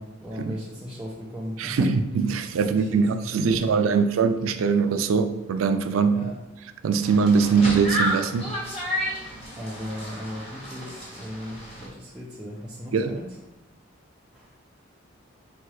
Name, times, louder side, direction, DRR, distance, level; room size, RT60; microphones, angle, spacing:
voice 1, 0.0-1.9 2.3-4.0 6.1-6.4 7.5-7.7 9.5-13.4 14.3-14.5, equal, 5° right, 0.5 m, -36 dB
voice 2, 2.3-6.2 6.8-8.5 12.9-13.2, right 5 dB, 85° right, 0.4 m, -22 dB
sound 1, 7.0-11.9, equal, 30° left, 1.3 m, -31 dB
4.3 x 2.3 x 4.7 m
head